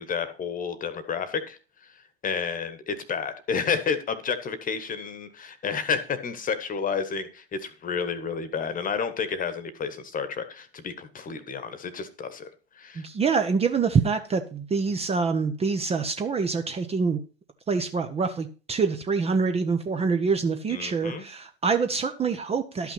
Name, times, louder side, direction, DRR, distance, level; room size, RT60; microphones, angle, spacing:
voice 1, 0.0-1.9 2.2-12.5 12.7-13.0 20.7-21.2, left 6 dB, 25° left, 13 dB, 1.4 m, -31 dB
voice 2, 13.0-17.2 17.7-22.9, right 5 dB, 20° right, 7 dB, 0.9 m, -25 dB
12.0 x 5.9 x 5.8 m, 0.37 s
hypercardioid pair, 95°, 34 cm